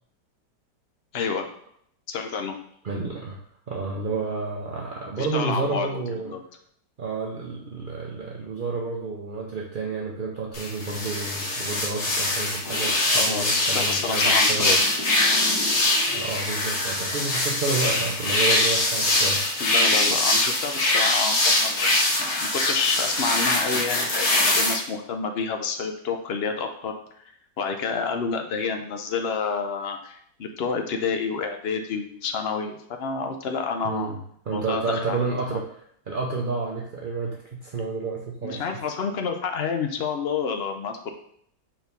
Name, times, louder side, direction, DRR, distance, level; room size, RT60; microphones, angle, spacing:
voice 1, 1.1-1.5 2.1-2.6 5.2-6.4 13.1-14.8 19.6-21.9 22.2-26.9 27.6-34.2 34.5-34.8 35.1-35.2 35.5-35.6 38.4-41.1, left 5 dB, 60° left, 5 dB, 0.6 m, -29 dB
voice 2, 2.8-3.4 3.7-6.4 7.0-14.7 16.1-19.4 33.8-34.2 34.5-35.7 36.1-38.6, right 4 dB, 55° right, -2 dB, 0.6 m, -30 dB
sound 1, 10.5-24.7, left 2 dB, 45° left, 1.4 m, -23 dB
4.6 x 4.4 x 5.2 m, 0.65 s
omnidirectional pair, 1.9 m